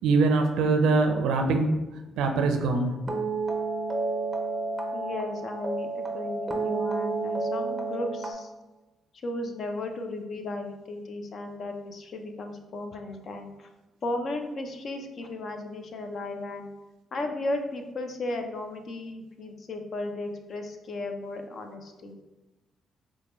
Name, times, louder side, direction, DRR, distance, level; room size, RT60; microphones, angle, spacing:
voice 1, 0.0-1.7 2.2-3.0, right 3 dB, 90° right, 4 dB, 0.4 m, -23 dB
sound 1, 3.1-8.3, right 3 dB, 15° right, 0.5 m, -30 dB
voice 2, 4.9-8.5 9.2-13.7 14.0-16.7 17.1-22.2, left 2 dB, 55° left, 5 dB, 0.5 m, -35 dB
4.5 x 2.1 x 3.0 m, 1.1 s
cardioid pair, 90°, 0 cm